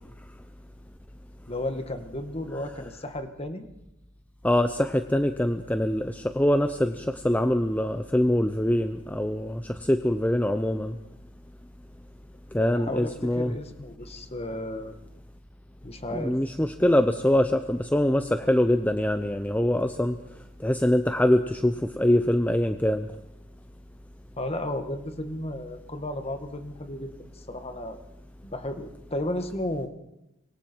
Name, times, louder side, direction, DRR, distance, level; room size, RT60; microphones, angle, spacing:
voice 1, 1.5-3.7 12.6-14.9 15.8-16.4 24.4-27.1 27.5-28.0 28.4-29.9, left 1 dB, 30° left, 7 dB, 1.9 m, -33 dB
voice 2, 4.4-10.9 12.5-13.5 16.2-20.1 20.6-23.1, left 1 dB, 10° left, 8 dB, 0.7 m, -24 dB
25.5 x 23.0 x 4.6 m, 0.89 s
head